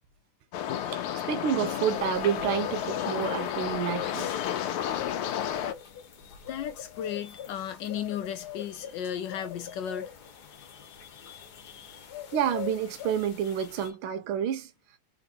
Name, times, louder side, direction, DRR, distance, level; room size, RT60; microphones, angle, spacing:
sound 1, 0.5-5.7, left 10 dB, 90° left, 1.6 m, -31 dB
voice 1, 0.9-4.3 12.3-14.7, right 9 dB, 85° right, 1.5 m, -29 dB
sound 2, 1.7-13.9, left 9 dB, 55° left, 1.4 m, -43 dB
voice 2, 3.0-3.4 4.1-4.6 5.8-5.9 6.2-10.1 10.5-12.1 13.8-13.9, left 9 dB, 75° left, 1.1 m, -37 dB
4.3 x 3.9 x 2.8 m
omnidirectional pair, 2.3 m